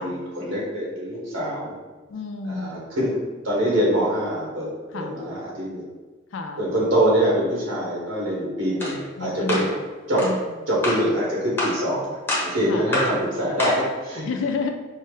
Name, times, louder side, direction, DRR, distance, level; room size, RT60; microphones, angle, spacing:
voice 1, 0.0-1.7 2.5-3.2 3.4-4.7 4.9-5.8 6.6-9.7 10.1-10.3 10.7-14.2, equal, 70° right, -5 dB, 1.3 m, -24 dB
voice 2, 2.1-2.8 4.9-5.2 6.3-6.6 9.2-9.8 10.2-10.6 12.7-12.9 14.2-14.7, left 4 dB, 65° left, 4 dB, 0.3 m, -30 dB
sound 1, 8.8-9.0 9.5-9.7 10.2-10.3 10.8-11.1 11.6-11.8 12.3-12.5 12.9-13.2 13.6-13.9, left 1 dB, 10° left, 0.7 m, -26 dB
5.4 x 2.1 x 3.2 m, 1.3 s
head